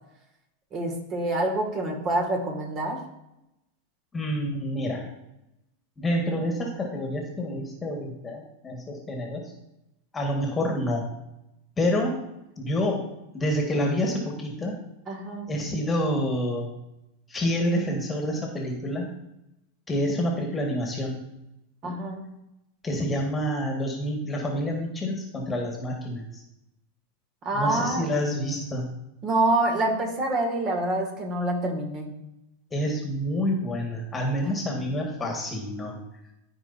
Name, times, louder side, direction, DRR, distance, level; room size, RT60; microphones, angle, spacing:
voice 1, 0.7-3.0 15.1-15.5 21.8-22.3 27.4-28.1 29.2-32.1 34.4-34.7, right 2 dB, 35° right, 2 dB, 2.1 m, -26 dB
voice 2, 4.1-5.1 6.0-9.5 10.1-11.1 11.8-12.2 12.6-13.1 13.3-14.8 15.5-16.7 17.3-19.1 19.9-21.2 22.8-26.4 27.5-28.8 32.7-36.0, equal, 15° left, 1 dB, 1.7 m, -28 dB
14.5 x 4.8 x 2.7 m, 0.89 s
hypercardioid pair, 100°, 0 cm